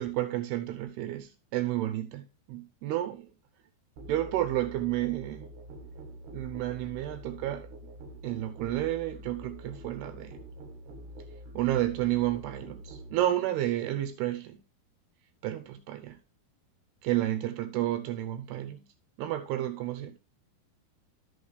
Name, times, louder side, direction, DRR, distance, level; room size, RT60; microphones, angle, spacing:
voice 1, 0.0-3.3 4.1-5.5 6.3-7.7 8.2-10.4 11.5-14.6 15.4-16.2 17.0-18.8 19.2-20.2, right 14 dB, 85° right, 2.8 m, -31 dB
Musical instrument, 4.0-13.2, equal, 60° right, 2.6 m, -46 dB
13.0 x 6.0 x 3.3 m
omnidirectional pair, 4.6 m